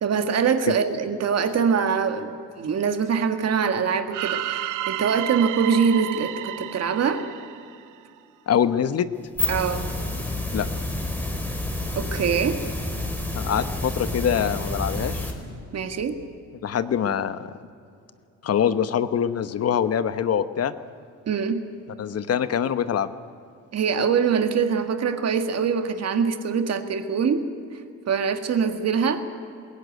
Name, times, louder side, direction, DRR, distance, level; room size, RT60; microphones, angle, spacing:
voice 1, 0.0-7.2 9.5-9.9 12.0-12.6 15.7-16.2 21.3-21.6 23.7-27.5 28.1-29.2, right 6 dB, 55° right, 8 dB, 1.8 m, -23 dB
sound 1, 4.1-8.2, right 13 dB, 85° right, 0.8 m, -31 dB
voice 2, 8.5-9.1 10.5-10.7 13.3-15.3 16.6-17.5 18.4-20.7 22.0-23.1, left 8 dB, 55° left, 12 dB, 1.0 m, -24 dB
sound 2, 9.1-15.3, left 2 dB, 5° left, 3.8 m, -29 dB
21.0 x 17.0 x 9.4 m, 2.5 s
cardioid pair, 90°, 30 cm